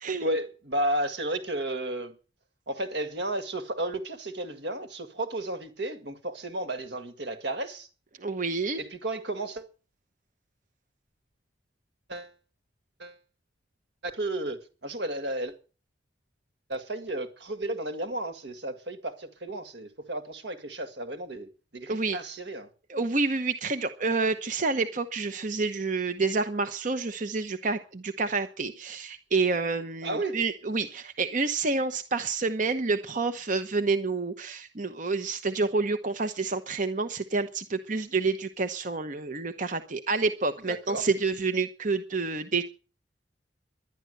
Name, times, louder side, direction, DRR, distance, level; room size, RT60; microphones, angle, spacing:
voice 1, 0.2-2.2 2.7-7.9 8.8-9.7 12.1-12.3 13.0-13.2 14.0-15.5 16.7-22.7 30.0-30.4 40.7-41.0, right 1 dB, 65° right, 1.9 m, -33 dB
voice 2, 8.2-8.8 21.9-22.2 22.9-42.6, right 3 dB, 45° right, 1.0 m, -28 dB
11.5 x 10.5 x 7.8 m
head